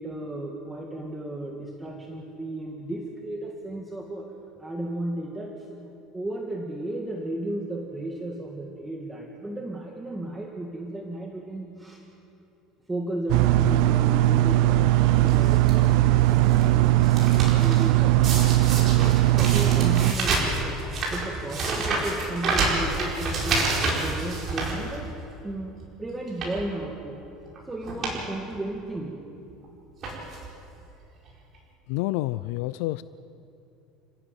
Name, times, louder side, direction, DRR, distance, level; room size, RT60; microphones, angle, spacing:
voice 1, 0.0-4.3 4.6-5.8 6.1-12.0 12.9-17.1 17.5-18.2 18.4-23.7 24.0-25.1 25.4-27.2 27.6-29.2, right 1 dB, 10° right, -1 dB, 1.8 m, -34 dB
sound 1, 13.3-20.1, right 15 dB, 65° right, 0.7 m, -19 dB
sound 2, 15.3-15.7 16.3-16.6 16.9-17.9 18.2-25.3 25.7-25.8 26.3-26.6 27.5-27.6 27.8-28.2 28.5-28.6 29.5-29.7 30.0-30.5 31.3-31.4 31.5-31.6, right 3 dB, 30° right, 5.0 m, -28 dB
voice 2, 31.9-33.0, left 18 dB, 75° left, 15 dB, 0.5 m, -28 dB
30.0 x 14.5 x 9.2 m, 2.8 s
cardioid pair, 175°, 0 cm